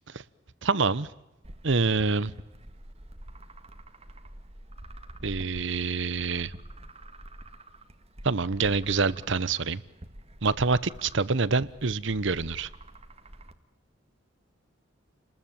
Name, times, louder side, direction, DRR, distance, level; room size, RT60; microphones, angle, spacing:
voice 1, 0.6-1.1 1.6-2.3 5.2-6.5 8.2-9.8 10.4-12.7, right 4 dB, 65° right, 19 dB, 1.0 m, -26 dB
sound 1, 1.4-13.5, right 1 dB, 30° right, 1.7 m, -47 dB
30.0 x 20.5 x 9.1 m, 0.94 s
head